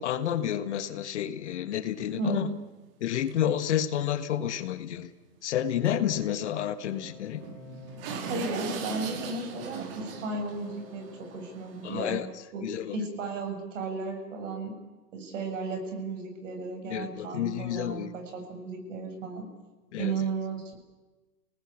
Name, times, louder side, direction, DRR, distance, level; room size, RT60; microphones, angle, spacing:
voice 1, 0.0-2.5 3.0-5.1 5.4-7.4 11.8-12.3 12.6-13.0 16.9-18.1 19.9-20.1, left 10 dB, 45° left, 11 dB, 1.5 m, -30 dB
sound 1, 1.9-2.0 2.5-2.6 3.3-3.4 3.6-3.7 4.0-4.2 5.9-6.0 6.2-6.3 6.9-12.2, right 6 dB, 35° right, 3.0 m, -40 dB
voice 2, 2.2-2.5 8.1-12.2 12.5-12.6 12.9-14.8 15.1-19.5 20.0-20.8, right 3 dB, 50° right, 4 dB, 7.4 m, -34 dB
Wind instrument woodwind instrument, 6.1-11.8, left 6 dB, 30° left, 2.8 m, -52 dB
28.5 x 19.0 x 8.6 m, 1.2 s
hypercardioid pair, 155°, 46 cm